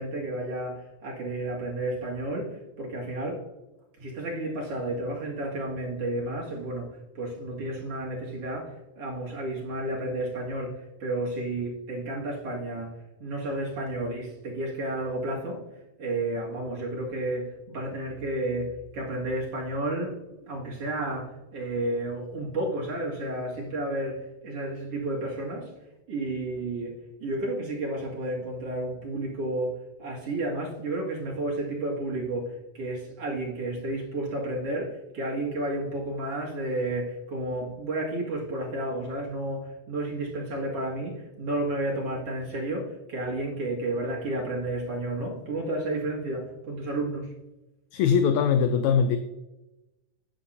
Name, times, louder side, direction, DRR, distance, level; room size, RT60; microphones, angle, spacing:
voice 1, 0.0-3.4 4.0-15.6 16.0-25.7 26.1-47.3, right 1 dB, 55° right, -3 dB, 2.8 m, -32 dB
voice 2, 47.9-49.2, left 7 dB, 80° left, 9 dB, 1.8 m, -21 dB
11.0 x 9.3 x 2.8 m, 0.98 s
omnidirectional pair, 3.5 m